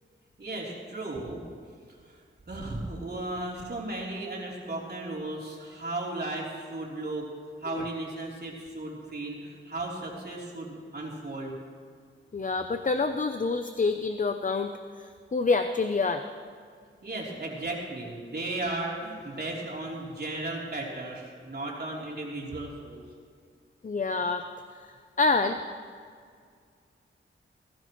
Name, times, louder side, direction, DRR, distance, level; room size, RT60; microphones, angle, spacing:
voice 1, 0.4-1.4 2.1-2.2 2.5-7.3 7.6-11.5 17.0-23.0, right 2 dB, 50° right, -3 dB, 3.6 m, -35 dB
voice 2, 12.3-16.2 23.8-24.4 24.8-25.6, left 3 dB, 40° left, 8 dB, 0.7 m, -27 dB
21.5 x 15.5 x 3.2 m, 2.1 s
wide cardioid pair, 80°, 21 cm